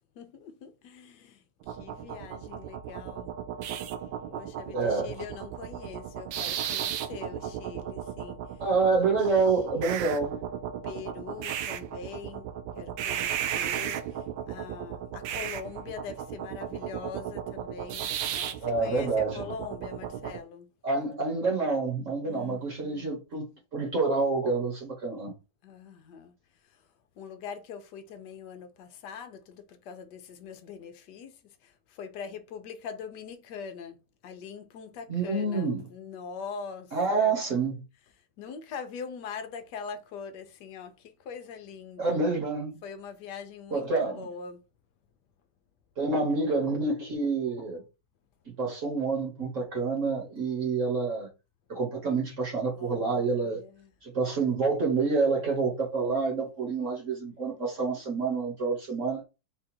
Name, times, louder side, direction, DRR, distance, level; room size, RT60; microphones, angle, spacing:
voice 1, 0.2-1.4 1.7-3.3 4.3-8.4 10.8-12.5 12.8-14.0 14.5-20.7 22.3-23.1 25.6-26.3 27.2-31.3 31.6-34.0 34.2-37.3 38.4-42.2 42.8-44.6 52.8-53.9, left 6 dB, 70° left, 1.2 m, -42 dB
sound 1, 1.6-20.4, right 10 dB, 80° right, 1.3 m, -35 dB
voice 2, 4.7-5.1 8.6-10.4 18.6-19.5 20.8-25.3 35.1-35.9 36.9-37.8 42.0-42.8 43.7-44.3 46.0-47.8 48.4-51.3 51.7-53.6 54.0-59.2, right 4 dB, 45° right, 1.4 m, -28 dB
4.3 x 2.5 x 4.2 m
omnidirectional pair, 2.2 m